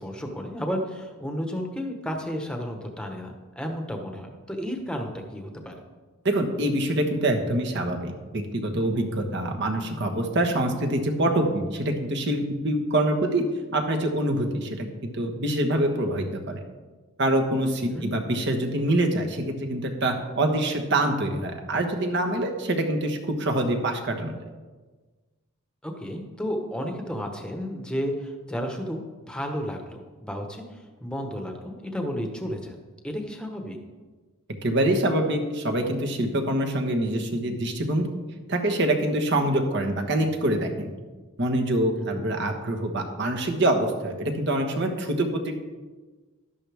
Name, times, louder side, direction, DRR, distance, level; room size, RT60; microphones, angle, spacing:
voice 1, 0.0-5.8 17.9-18.1 25.8-32.8 33.0-33.8 42.1-42.2, equal, 5° left, 3 dB, 1.1 m, -32 dB
voice 2, 6.2-13.5 13.7-16.6 17.2-24.3 34.6-38.1 38.5-40.9 41.4-45.6, right 1 dB, 55° right, 3 dB, 1.3 m, -25 dB
12.0 x 11.0 x 3.5 m, 1.3 s
head